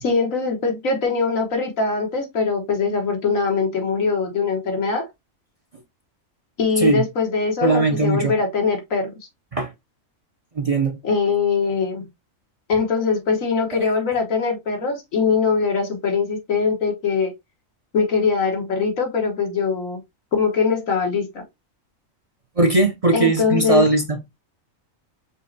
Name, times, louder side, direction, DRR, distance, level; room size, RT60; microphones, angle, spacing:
voice 1, 0.0-5.1 6.6-9.1 11.0-12.1 12.7-17.3 17.9-20.0 20.3-21.4 23.1-23.8, left 5 dB, 80° left, 1.7 m, -22 dB
voice 2, 7.6-8.3 9.5-9.7 10.5-11.0 13.8-13.9 22.6-24.2, right 2 dB, 35° right, 0.6 m, -19 dB
5.5 x 3.0 x 2.7 m
omnidirectional pair, 1.4 m